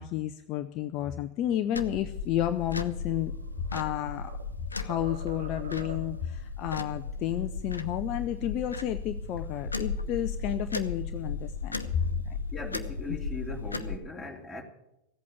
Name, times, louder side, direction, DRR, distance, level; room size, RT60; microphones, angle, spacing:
voice 1, 0.0-3.3 3.7-4.3 4.8-12.0, left 12 dB, 40° left, 9 dB, 0.6 m, -31 dB
sound 1, 1.7-14.0, left 4 dB, 80° left, 1.0 m, -35 dB
sound 2, 3.2-4.5 4.9-6.3, right 5 dB, 65° right, 1.5 m, -46 dB
voice 2, 12.5-14.6, left 3 dB, 5° left, 0 dB, 2.8 m, -39 dB
16.0 x 8.4 x 8.5 m, 0.87 s
figure-of-eight pair, 90°, 0 cm